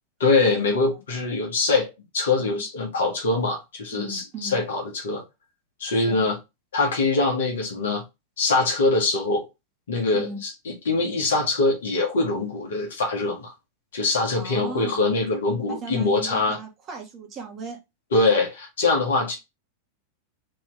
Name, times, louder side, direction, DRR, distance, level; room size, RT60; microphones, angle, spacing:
voice 1, 0.2-5.2 5.8-6.4 6.7-8.0 8.4-9.4 9.9-13.5 13.9-16.6 18.1-19.3, left 3 dB, 60° left, 1.2 m, -23 dB
voice 2, 3.9-4.6 5.9-6.2 10.1-10.4 14.3-15.1 15.7-17.8, right 4 dB, 30° right, 1.3 m, -37 dB
3.4 x 3.0 x 3.3 m
figure-of-eight pair, 90°, 0 cm